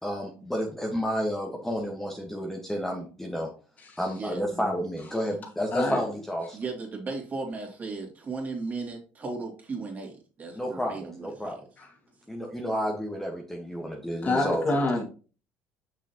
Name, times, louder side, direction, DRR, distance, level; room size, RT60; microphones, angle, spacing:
voice 1, 0.0-3.5 4.0-6.6 10.5-10.9 11.2-11.6 12.3-14.8, equal, 5° left, 1.3 m, -31 dB
voice 2, 4.1-4.5 5.3-5.5 6.5-11.6, right 3 dB, 35° right, 2.6 m, -36 dB
voice 3, 5.7-6.0 11.8-11.9 14.2-15.0, left 2 dB, 35° left, 2.2 m, -26 dB
6.4 x 6.3 x 2.9 m
supercardioid pair, 85°, 5 cm